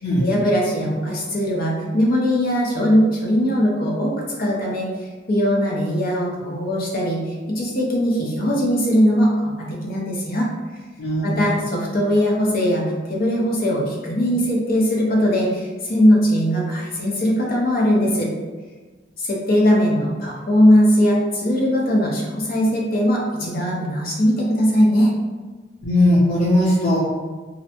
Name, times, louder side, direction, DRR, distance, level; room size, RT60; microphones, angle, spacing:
voice 1, 0.2-4.9 5.3-10.5 11.2-18.3 19.2-25.1, equal, 50° left, -3 dB, 0.6 m, -20 dB
voice 2, 11.0-11.4 25.8-27.0, left 1 dB, 85° left, -12 dB, 0.8 m, -18 dB
2.6 x 2.1 x 2.8 m, 1.4 s
head